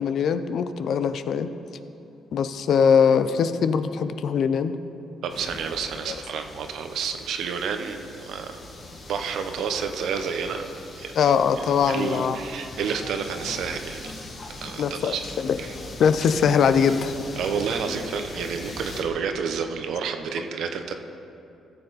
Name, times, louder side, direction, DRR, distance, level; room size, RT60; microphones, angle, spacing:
voice 1, 0.0-1.5 2.3-4.8 6.1-6.2 11.2-12.4 14.8-15.1 15.4-15.6 16.0-17.1, left 7 dB, 65° left, 11 dB, 0.5 m, -21 dB
voice 2, 5.2-8.6 9.1-10.7 10.9-11.2 11.8-14.1 14.5-15.2 15.6-15.7 17.4-20.9, right 6 dB, 75° right, 7 dB, 0.8 m, -30 dB
sound 1, 5.3-19.0, left 2 dB, 50° left, 1.7 m, -40 dB
15.5 x 6.9 x 4.0 m, 2.7 s
cardioid pair, 90°, 0 cm